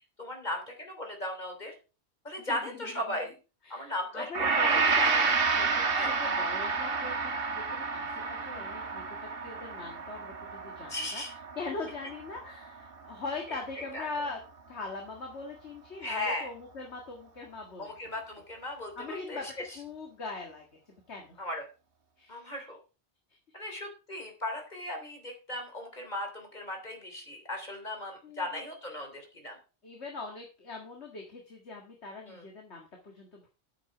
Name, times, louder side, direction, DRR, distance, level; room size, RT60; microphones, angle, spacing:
voice 1, 0.2-1.7 2.2-3.3 3.7-4.3 4.6-5.4 6.0-6.2 10.9-11.3 13.5-13.6 13.9-14.1 16.0-16.5 17.8-19.4 21.4-21.6 22.3-22.8 23.5-29.6 32.3-32.4, left 1 dB, 40° left, 3 dB, 3.4 m, -37 dB
voice 2, 2.4-3.2 3.6-14.4 14.7-17.9 19.0-19.5 19.7-21.4 22.2-22.4 23.6-23.9 28.2-28.6 29.8-33.5, left 3 dB, 90° left, 1 dB, 2.1 m, -42 dB
Gong, 4.3-12.8 13.1-13.3, right 4 dB, 60° right, 1.5 m, -30 dB
9.0 x 8.1 x 4.9 m, 0.33 s
omnidirectional pair, 1.1 m